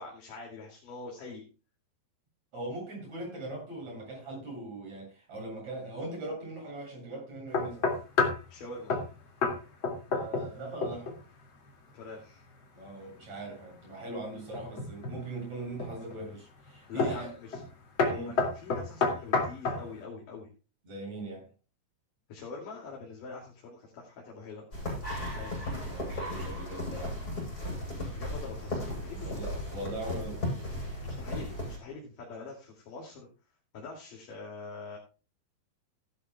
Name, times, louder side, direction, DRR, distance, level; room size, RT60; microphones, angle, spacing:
voice 1, 0.0-1.4 8.5-9.0 11.9-12.4 16.9-17.6 18.3-20.5 22.3-24.6 25.3-25.5 27.9-29.5 31.0-33.3 33.7-35.0, left 3 dB, 55° left, 3.9 m, -44 dB
voice 2, 2.5-7.9 10.1-11.1 12.7-17.3 18.0-18.3 20.9-21.5 25.9-27.2 29.4-30.5, right 2 dB, 40° right, 8.8 m, -40 dB
sound 1, 7.5-8.5 8.9-9.1 9.4-9.6 9.8-10.5 10.8-11.2 14.5-15.2 15.8-16.2 17.0-17.2 17.5-17.7 18.0-19.8, left 4 dB, 35° left, 2.5 m, -28 dB
sound 2, 24.7-31.8, left 1 dB, 20° left, 7.8 m, -36 dB
17.0 x 11.5 x 2.3 m
omnidirectional pair, 4.9 m